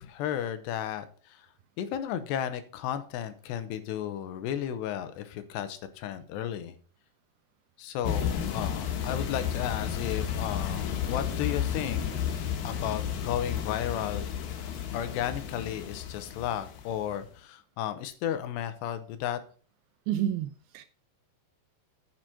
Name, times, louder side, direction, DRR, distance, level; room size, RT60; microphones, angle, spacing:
voice 1, 0.0-1.5 1.8-6.8 7.8-12.0 12.6-14.3 14.9-19.4, left 10 dB, 85° left, 3.0 m, -34 dB
sound 1, 8.0-17.1, left 9 dB, 65° left, 2.8 m, -32 dB
voice 2, 20.1-20.8, right 11 dB, 80° right, 2.3 m, -30 dB
9.0 x 6.2 x 5.8 m
omnidirectional pair, 4.9 m